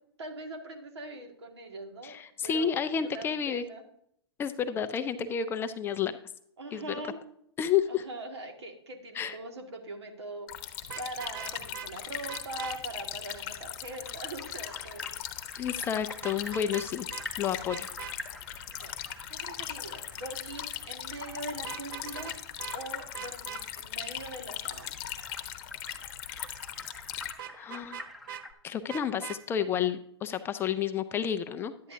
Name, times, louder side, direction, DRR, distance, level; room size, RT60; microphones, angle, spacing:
voice 1, 0.2-3.8 6.6-7.2 7.9-10.5 11.0-15.1 18.7-18.9 19.3-22.3 22.7-25.0 31.8-31.9, right 2 dB, 75° right, 4 dB, 2.1 m, -42 dB
voice 2, 2.0-3.6 4.4-6.1 6.7-6.8 7.6-8.1 9.1-9.4 15.6-17.1 17.4-17.9 27.5-28.1 28.6-31.7, left 8 dB, 15° left, 10 dB, 0.4 m, -30 dB
sound 1, 10.5-27.3, left 12 dB, 35° left, 0.9 m, -39 dB
Vehicle horn car horn honking, 10.8-11.9 12.3-12.8 16.2-16.9 17.1-17.2 17.7-18.1 21.6-22.3 22.6-22.8 23.1-23.6 27.4-28.4 28.9-29.4, right 10 dB, 50° right, 0.9 m, -41 dB
sound 2, 13.5-28.5, left 1 dB, ahead, 0.8 m, -48 dB
11.5 x 9.3 x 2.8 m, 0.69 s
hypercardioid pair, 125°, 14 cm